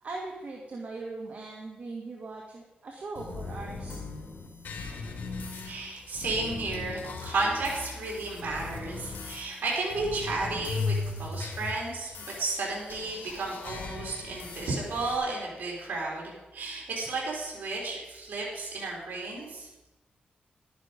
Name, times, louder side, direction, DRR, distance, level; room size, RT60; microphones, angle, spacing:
voice 1, 0.0-4.0, right 3 dB, 50° right, -1 dB, 1.8 m, -40 dB
sound 1, 3.1-15.1, left 4 dB, 90° left, 2.1 m, -38 dB
voice 2, 5.6-19.7, right 3 dB, 80° right, -4 dB, 3.7 m, -33 dB
12.0 x 10.0 x 5.2 m, 1.0 s
wide cardioid pair, 120°, 3 cm